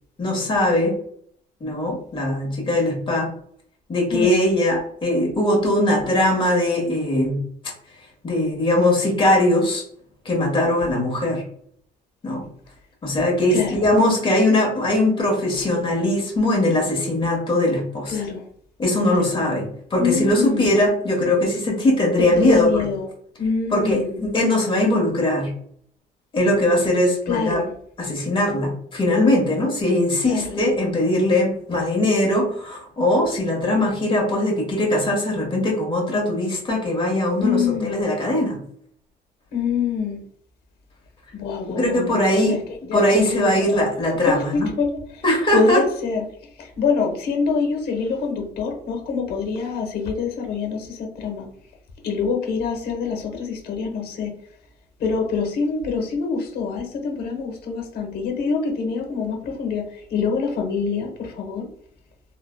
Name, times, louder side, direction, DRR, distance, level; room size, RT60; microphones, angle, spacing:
voice 1, 0.2-1.0 1.6-3.3 3.9-7.4 8.2-9.8 10.2-11.4 12.2-12.4 13.0-18.2 18.8-22.7 23.7-25.5 26.3-27.6 28.0-38.6 41.7-42.6 42.9-44.7 45.2-45.8, left 1 dB, 30° left, 0 dB, 1.2 m, -20 dB
voice 2, 13.5-13.8 18.1-18.4 19.0-19.3 20.0-20.8 22.3-23.1 23.4-24.1 27.3-27.7 30.2-30.6 37.4-37.9 39.5-40.2 41.3-42.6 42.9-43.9 44.3-45.0 45.5-46.2 46.8-51.5 52.0-54.3 55.0-61.7, left 5 dB, 65° left, 3 dB, 1.0 m, -25 dB
3.2 x 2.2 x 2.2 m, 0.63 s
cardioid pair, 110°, 17 cm